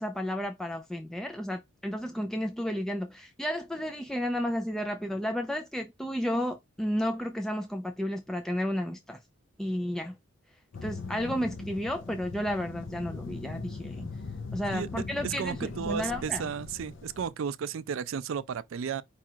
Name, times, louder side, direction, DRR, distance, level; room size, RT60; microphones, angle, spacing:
voice 1, 0.0-9.2 9.6-10.2 10.8-14.1 14.5-16.5, equal, ahead, 0.3 m, -32 dB
sound 1, 10.7-17.3, left 3 dB, 60° left, 0.5 m, -40 dB
voice 2, 15.2-19.0, right 7 dB, 70° right, 0.4 m, -33 dB
4.9 x 2.4 x 4.4 m
head